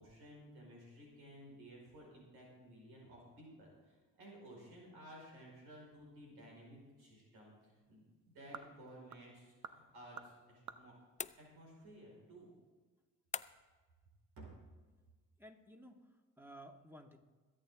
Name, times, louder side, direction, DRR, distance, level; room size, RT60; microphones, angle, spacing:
voice 1, 0.0-10.9 11.4-12.5 14.4-14.5, right 1 dB, 80° right, -2 dB, 5.1 m, -56 dB
sound 1, 7.2-12.2, right 7 dB, 50° right, 0.9 m, -56 dB
sound 2, 11.2-11.9 13.3-13.8, left 6 dB, 20° left, 0.5 m, -45 dB
voice 2, 15.4-17.2, right 1 dB, 5° right, 3 dB, 1.9 m, -56 dB
22.5 x 8.8 x 3.7 m, 1.3 s
hypercardioid pair, 50°, 38 cm